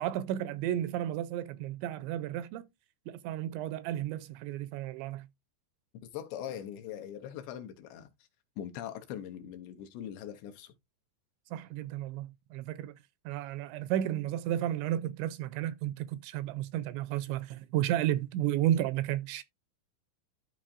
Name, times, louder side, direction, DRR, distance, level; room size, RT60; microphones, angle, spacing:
voice 1, 0.0-2.7 3.1-5.3 11.5-12.9 13.3-19.4, right 12 dB, 85° right, 2.7 m, -32 dB
voice 2, 6.0-8.1 8.6-10.7, left 10 dB, 80° left, 2.8 m, -41 dB
12.5 x 4.5 x 2.5 m
omnidirectional pair, 5.4 m